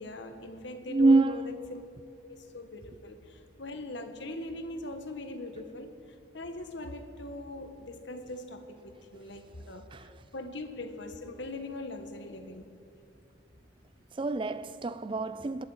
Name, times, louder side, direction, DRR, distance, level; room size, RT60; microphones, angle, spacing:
voice 1, 0.0-1.4 1.7-1.8 2.2-5.9 6.3-9.8 10.3-12.8, left 2 dB, 65° left, 1.3 m, -41 dB
voice 2, 0.9-1.5 9.9-10.1 14.1-15.6, right 3 dB, 25° right, 0.4 m, -26 dB
26.5 x 11.0 x 4.9 m
head